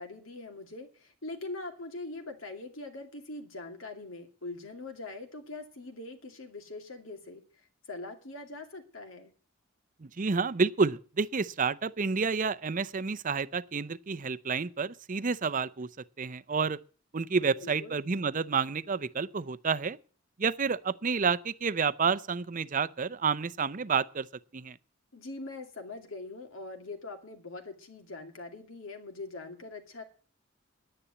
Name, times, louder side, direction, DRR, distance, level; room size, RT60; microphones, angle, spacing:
voice 1, 0.0-7.4 7.9-9.3 17.5-18.0 25.1-30.0, left 2 dB, 80° left, 2.5 m, -42 dB
voice 2, 10.0-15.9 16.2-16.8 17.1-20.0 20.4-24.3 24.5-24.8, right 5 dB, 40° right, 0.6 m, -29 dB
10.0 x 10.0 x 9.4 m
head